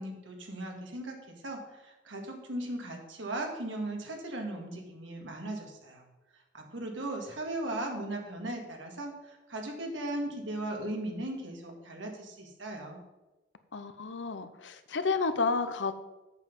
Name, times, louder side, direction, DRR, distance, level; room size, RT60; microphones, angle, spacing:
voice 1, 0.0-6.0 6.5-13.0, right 1 dB, 85° right, 2 dB, 2.0 m, -37 dB
voice 2, 13.7-15.9, left 4 dB, 75° left, 11 dB, 0.7 m, -31 dB
8.1 x 7.1 x 5.4 m, 1.1 s
head